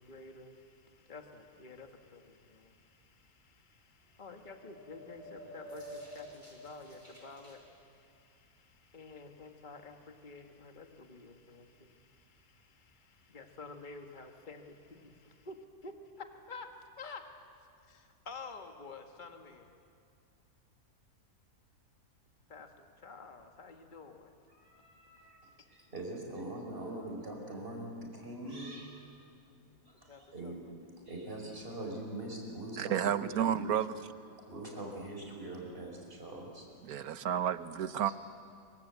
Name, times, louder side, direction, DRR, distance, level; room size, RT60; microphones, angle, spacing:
voice 1, 0.0-16.7 17.0-17.3 17.9-19.8 22.5-24.3 25.6-25.7 30.1-30.7, left 4 dB, 30° left, 4 dB, 1.7 m, -50 dB
sound 1, 4.3-7.6, equal, 10° left, 5.9 m, -49 dB
sound 2, 24.5-25.4 26.3-26.6 28.4-29.0, right 1 dB, 60° right, 4.4 m, -55 dB
voice 2, 25.7-28.8 29.9-30.6 31.1-33.6 34.5-36.7 38.1-38.2, right 1 dB, 35° right, 0 dB, 5.5 m, -42 dB
voice 3, 32.8-33.9 36.8-38.1, right 10 dB, 75° right, 12 dB, 1.3 m, -31 dB
25.5 x 24.0 x 8.2 m, 2.4 s
omnidirectional pair, 1.6 m